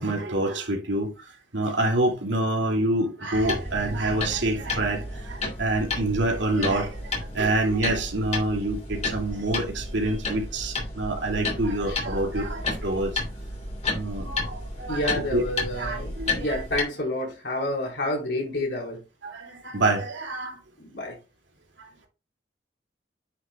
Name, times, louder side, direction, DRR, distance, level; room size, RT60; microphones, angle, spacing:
voice 1, 0.0-13.2 13.9-15.0 15.3-15.4 15.8-16.6 19.2-20.6 21.8-21.9, right 2 dB, 85° right, 2.6 m, -27 dB
sound 1, 3.3-16.8, left 2 dB, 40° left, 2.7 m, -32 dB
voice 2, 14.9-19.0 20.8-21.2, left 1 dB, 70° left, 4.4 m, -29 dB
9.5 x 6.7 x 2.4 m
head